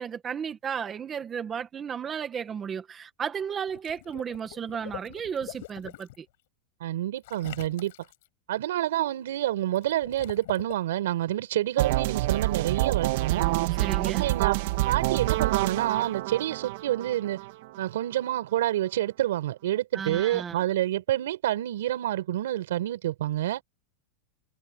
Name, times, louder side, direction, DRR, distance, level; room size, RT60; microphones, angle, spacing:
voice 1, 0.0-6.3 13.8-14.3 19.9-20.7, right 7 dB, 15° right, 1.2 m, -34 dB
Water / Liquid, 3.7-6.2 7.2-8.3 9.8-10.7, left 18 dB, 60° left, 4.9 m, -44 dB
voice 2, 6.8-7.9 8.5-13.5 14.0-14.6 14.8-17.4 17.8-23.6, right 13 dB, 80° right, 4.5 m, -28 dB
sound 1, 11.8-17.8, right 18 dB, 50° right, 1.7 m, -27 dB
supercardioid pair, 170°, 0 cm